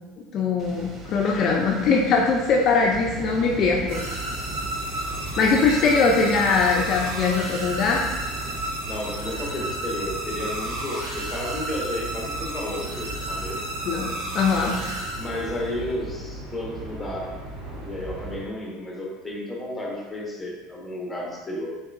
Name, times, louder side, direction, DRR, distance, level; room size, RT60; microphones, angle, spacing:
voice 1, 0.3-4.2 5.4-8.0 13.9-14.7, left 4 dB, 45° left, -1 dB, 0.4 m, -21 dB
sound 1, 0.6-8.7, right 2 dB, 35° right, 0.7 m, -42 dB
sound 2, 2.9-18.4, right 2 dB, 70° right, 1.4 m, -37 dB
sound 3, 3.9-15.7, right 1 dB, 85° right, 1.2 m, -33 dB
voice 2, 8.8-13.6 15.2-17.4 17.8-21.8, left 1 dB, 10° left, -3 dB, 1.0 m, -32 dB
3.8 x 3.6 x 2.5 m, 1.2 s
supercardioid pair, 120°, 0 cm